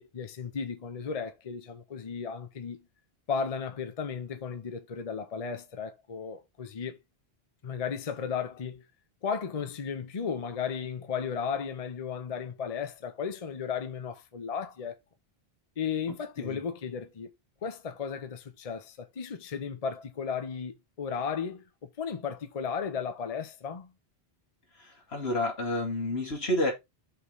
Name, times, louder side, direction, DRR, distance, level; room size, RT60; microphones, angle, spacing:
voice 1, 0.0-2.8 3.3-7.0 7.6-8.8 9.2-15.0 15.8-17.3 17.6-23.9, left 6 dB, 40° left, 0.8 m, -35 dB
voice 2, 24.7-26.7, left 1 dB, 85° left, 2.5 m, -30 dB
5.6 x 3.2 x 5.4 m
omnidirectional pair, 1.1 m